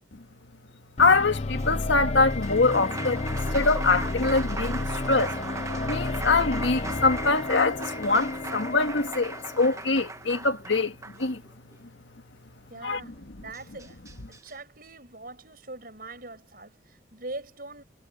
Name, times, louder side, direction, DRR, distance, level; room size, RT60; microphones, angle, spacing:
voice 1, 1.0-5.4 5.9-11.4 12.8-13.0, left 3 dB, 75° left, 1.8 m, -24 dB
sound 1, 1.0-10.0, left 2 dB, 35° left, 0.6 m, -32 dB
Applause, 1.5-11.8 13.2-13.3 13.5-14.5, right 3 dB, 15° right, 1.0 m, -38 dB
voice 2, 12.7-14.0 14.3-17.8, right 2 dB, 50° right, 6.3 m, -42 dB
head